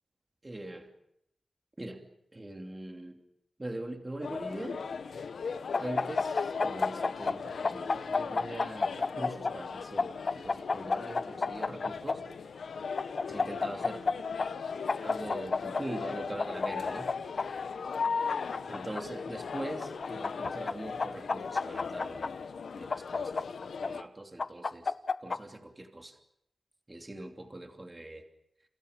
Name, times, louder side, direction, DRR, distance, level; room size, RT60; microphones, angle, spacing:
voice 1, 0.4-0.9 1.8-2.1 2.3-3.2 3.6-4.8 5.8-12.2 13.3-14.1 15.0-17.1 18.7-22.4 22.7-23.5 23.8-24.9 25.2-26.2 26.9-28.2, right 1 dB, 20° right, 3 dB, 3.0 m, -42 dB
sound 1, 4.2-24.0, left 5 dB, 85° left, 1.3 m, -38 dB
sound 2, 5.7-7.4 7.6-9.5 10.0-12.2 13.0-14.1 14.4-14.5 14.9-15.8 16.4-17.5 18.0-19.0 19.8-20.7 21.0-22.3 22.9-23.9 24.4-25.4, left 4 dB, 45° left, 0.9 m, -29 dB
30.0 x 28.5 x 5.3 m, 0.77 s
wide cardioid pair, 120°, 0 cm